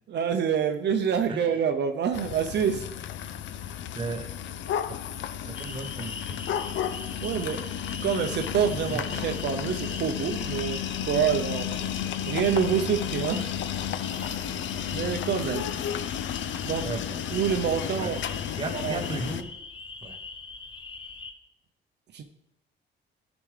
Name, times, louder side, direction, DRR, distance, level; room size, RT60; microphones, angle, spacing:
voice 1, 0.1-2.9 7.2-7.6 8.0-11.9 12.3-13.6 14.3-14.5 14.9-15.7 16.6-16.9 17.3-18.2 18.7-19.0 22.1-22.2, right 7 dB, 60° right, 5 dB, 0.6 m, -27 dB
sound 1, 2.1-19.4, left 9 dB, 70° left, 0.5 m, -32 dB
voice 2, 3.9-4.3 4.9-5.0 5.4-6.5 8.9-9.0 16.8-17.2 18.0-19.5 20.0-20.2, right 3 dB, 25° right, 6 dB, 0.8 m, -36 dB
sound 2, 5.5-21.3, left 4 dB, 25° left, 0.7 m, -42 dB
11.0 x 6.0 x 3.3 m, 0.82 s
cardioid pair, 90°, 20 cm